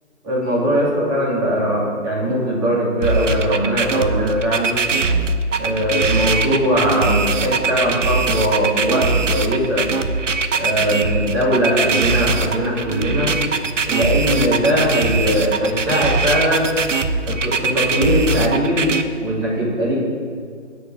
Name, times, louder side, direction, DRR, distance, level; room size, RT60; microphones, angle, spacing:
voice 1, 0.2-4.8 5.6-9.9 10.5-13.3 13.8-16.7 17.2-18.9 19.2-20.0, equal, 20° right, -6 dB, 2.6 m, -20 dB
sound 1, 3.0-19.0, right 4 dB, 80° right, 1.0 m, -21 dB
9.4 x 6.8 x 8.3 m, 2.1 s
hypercardioid pair, 170°, 37 cm